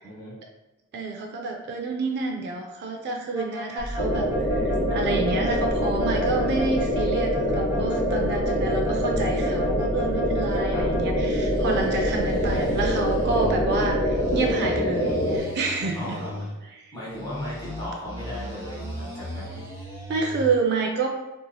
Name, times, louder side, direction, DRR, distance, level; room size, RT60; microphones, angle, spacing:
voice 1, 0.0-0.3 10.7-10.9 15.9-16.5 16.9-19.6, left 1 dB, 20° left, -8 dB, 1.2 m, -37 dB
voice 2, 0.9-16.2 20.1-21.1, right 3 dB, 50° right, 2 dB, 0.3 m, -29 dB
sound 1, 3.3-11.0 11.3-13.5 14.0-16.5 17.1-20.5, equal, 15° right, 0.7 m, -37 dB
sound 2, 3.8-14.5, right 1 dB, 85° left, 0.8 m, -32 dB
sound 3, 4.0-15.4, equal, 35° left, 0.7 m, -25 dB
2.9 x 2.7 x 2.2 m, 1.0 s
head